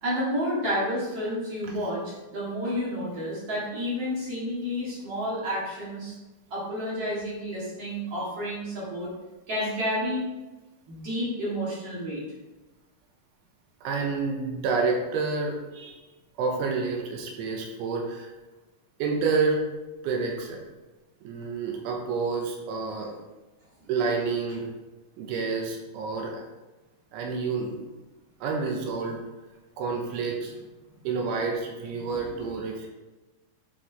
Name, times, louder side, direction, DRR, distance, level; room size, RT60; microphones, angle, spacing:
voice 1, 0.0-6.1 6.5-9.1 9.5-10.2 10.9-12.2 32.1-32.5, equal, 50° right, -8 dB, 1.9 m, -30 dB
voice 2, 13.8-16.0 16.4-18.3 19.0-19.6 20.0-20.6 21.2-23.1 23.9-24.7 25.2-26.4 27.1-27.7 28.4-29.2 29.8-30.5 31.0-32.9, right 4 dB, 80° right, 1 dB, 3.3 m, -29 dB
11.0 x 4.6 x 3.4 m, 1.1 s
omnidirectional pair, 5.7 m